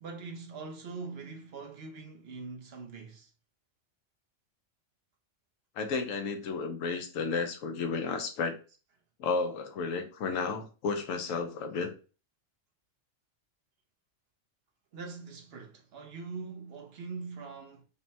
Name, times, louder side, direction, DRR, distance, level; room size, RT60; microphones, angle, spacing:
voice 1, 0.0-3.3 14.9-17.8, right 4 dB, 55° right, 0.9 m, -42 dB
voice 2, 5.8-8.6 9.2-11.9, left 4 dB, 80° left, 1.0 m, -32 dB
5.2 x 2.2 x 2.7 m
omnidirectional pair, 1.3 m